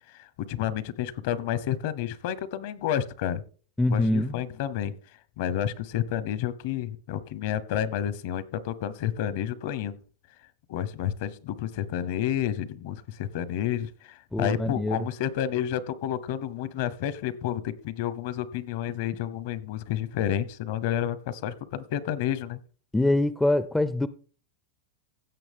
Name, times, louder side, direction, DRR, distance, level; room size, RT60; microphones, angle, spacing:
voice 1, 0.1-3.4 3.9-4.9 5.4-10.0 10.7-22.6, left 10 dB, 60° left, 0.9 m, -30 dB
voice 2, 3.8-4.4 14.3-15.1 22.9-24.1, left 1 dB, 5° left, 0.4 m, -24 dB
16.0 x 6.1 x 3.6 m
supercardioid pair, 155°, 0 cm